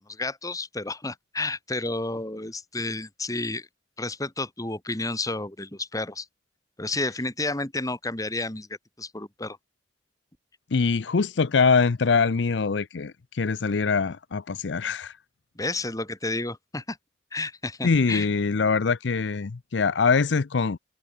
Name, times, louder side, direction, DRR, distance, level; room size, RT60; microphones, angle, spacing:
voice 1, 0.1-3.7 4.0-6.3 6.8-8.7 9.0-9.6 15.6-17.0 17.3-18.3, left 2 dB, 20° left, 2.2 m, -31 dB
voice 2, 10.7-15.1 17.8-20.8, left 5 dB, 75° left, 0.6 m, -23 dB
head